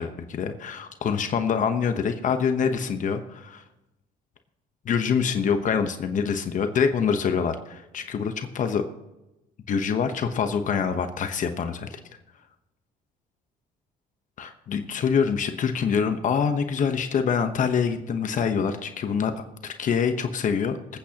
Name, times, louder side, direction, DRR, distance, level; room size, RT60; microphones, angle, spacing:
voice 1, 0.0-3.6 4.8-8.8 9.7-12.0 14.4-19.3 19.6-20.8, left 6 dB, 50° left, 7 dB, 1.0 m, -25 dB
26.0 x 8.7 x 2.9 m, 0.97 s
cardioid pair, 110°, 17 cm